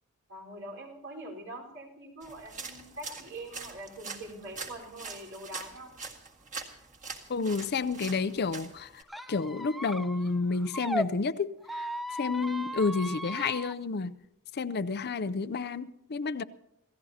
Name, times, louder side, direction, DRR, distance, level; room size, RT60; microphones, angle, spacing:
voice 1, 0.3-6.0, right 1 dB, 60° right, 4.4 m, -44 dB
sound 1, 2.2-9.0, right 4 dB, 35° right, 1.9 m, -44 dB
voice 2, 7.3-9.0 9.3-14.1 14.5-16.4, left 4 dB, 45° left, 0.5 m, -30 dB
Squeak, 9.1-11.1 11.6-13.7, equal, ahead, 0.5 m, -36 dB
27.5 x 16.0 x 2.8 m
head